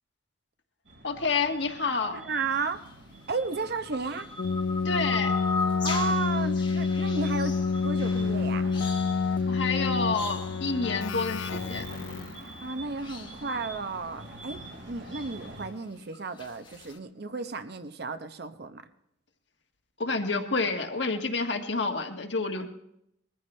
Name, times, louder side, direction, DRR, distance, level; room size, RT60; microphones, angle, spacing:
sound 1, 0.8-15.7, right 2 dB, 85° right, 4.9 m, -46 dB
voice 1, 1.0-2.2 4.8-5.3 9.5-11.8 20.0-22.7, left 4 dB, 65° left, 4 dB, 1.5 m, -29 dB
voice 2, 2.1-2.8 3.3-4.3 5.8-8.7 12.4-14.6 14.9-18.8, right 4 dB, 60° right, 9 dB, 0.9 m, -33 dB
sound 2, 2.3-12.7 13.0-14.3 14.6-17.0, left 3 dB, 25° left, 1.2 m, -40 dB
Keyboard (musical), 4.4-12.5, left 5 dB, 85° left, 0.4 m, -28 dB
21.5 x 14.5 x 3.3 m, 0.76 s
head